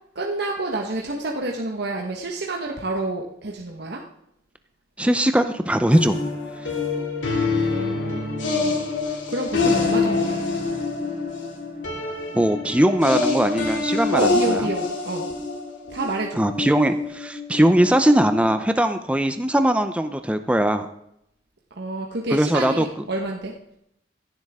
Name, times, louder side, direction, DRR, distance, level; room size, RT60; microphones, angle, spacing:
voice 1, 0.1-4.0 7.4-10.4 14.1-15.3 15.9-16.4 21.7-23.5, right 2 dB, 65° right, 0 dB, 1.3 m, -29 dB
voice 2, 5.0-6.2 12.3-14.6 16.4-20.9 22.3-22.9, right 1 dB, 5° right, 8 dB, 0.6 m, -20 dB
sound 1, 5.9-18.6, left 3 dB, 80° left, 2.8 m, -26 dB
16.5 x 10.5 x 3.6 m, 0.77 s
head